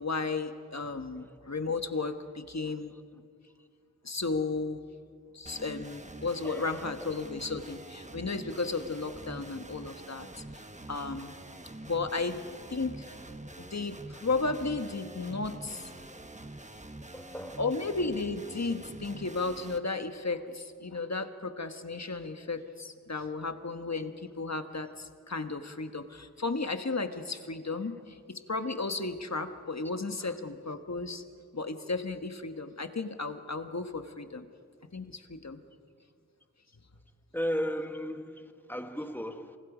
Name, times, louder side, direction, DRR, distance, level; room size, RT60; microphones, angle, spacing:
voice 1, 0.0-2.9 4.0-4.8 5.3-10.3 10.9-11.3 11.8-12.4 12.7-13.1 13.6-15.9 17.6-31.2 31.5-34.5 34.9-35.6, left 3 dB, 55° left, 1.4 m, -34 dB
sound 1, 5.5-19.8, right 1 dB, 20° right, 1.1 m, -46 dB
voice 2, 6.4-7.1 13.1-13.2 16.3-16.6 17.1-17.7 22.0-22.1 22.4-22.5 29.8-30.4 37.3-39.6, equal, 5° left, 1.4 m, -37 dB
27.5 x 24.0 x 5.1 m
wide cardioid pair, 55°, 32 cm